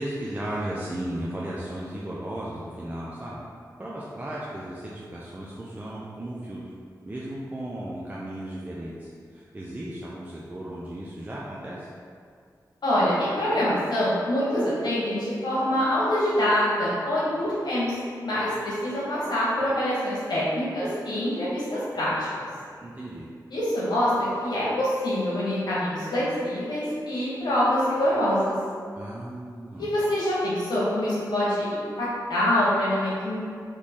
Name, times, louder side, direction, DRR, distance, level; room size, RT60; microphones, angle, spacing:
voice 1, 0.0-3.4 3.8-6.6 7.0-11.9 22.8-23.3 28.9-29.9, right 1 dB, 20° right, -6 dB, 0.5 m, -35 dB
voice 2, 12.8-17.9 18.2-22.1 23.5-28.5 29.8-33.4, left 1 dB, 85° left, -8 dB, 1.1 m, -25 dB
4.1 x 3.2 x 3.6 m, 2.1 s
wide cardioid pair, 85°, 7 cm